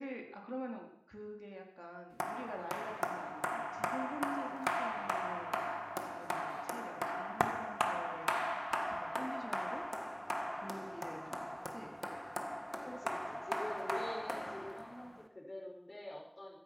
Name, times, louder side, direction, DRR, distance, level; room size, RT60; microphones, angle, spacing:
voice 1, 0.0-5.7 6.0-8.6 9.0-9.9 10.5-12.0, equal, 10° right, 1 dB, 3.8 m, -47 dB
sound 1, 2.2-15.2, equal, 10° left, 1.9 m, -39 dB
voice 2, 12.8-16.6, left 1 dB, 80° left, 0 dB, 5.1 m, -46 dB
16.0 x 13.5 x 6.1 m, 0.68 s
wide cardioid pair, 45°, 0 cm